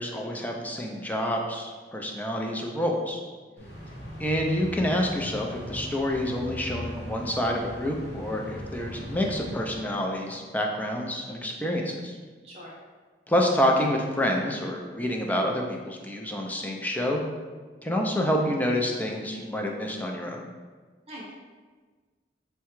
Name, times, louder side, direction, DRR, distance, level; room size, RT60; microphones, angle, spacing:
voice 1, 0.0-3.2 4.2-12.2 13.3-17.2 17.8-20.4, left 1 dB, 10° left, 1 dB, 0.3 m, -28 dB
sound 1, 3.6-10.4, equal, 65° left, 0.7 m, -39 dB
voice 2, 3.6-3.7 12.4-12.7 21.1-21.3, equal, 35° right, -4 dB, 0.6 m, -42 dB
4.6 x 2.2 x 3.0 m, 1.4 s
head